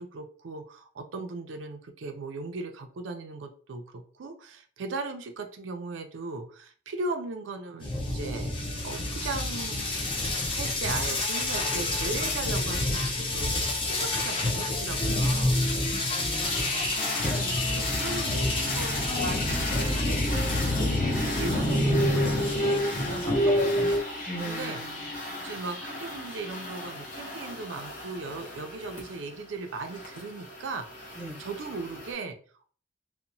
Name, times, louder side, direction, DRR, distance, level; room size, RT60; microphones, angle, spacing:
voice 1, 0.0-8.5 8.8-10.0 10.5-15.7 17.3-24.8 25.4-32.4, right 3 dB, 90° right, 6 dB, 0.4 m, -38 dB
sound 1, 7.8-24.0, left 1 dB, 30° left, 0.5 m, -27 dB
voice 2, 15.9-17.4 17.7-18.0 24.3-25.0 31.2-31.5, right 1 dB, 10° right, -2 dB, 0.7 m, -41 dB
sound 2, 16.4-32.1, left 1 dB, 45° left, 0.9 m, -37 dB
Wind instrument woodwind instrument, 17.0-22.5, left 4 dB, 85° left, 0.5 m, -45 dB
2.8 x 2.1 x 2.6 m, 0.44 s
head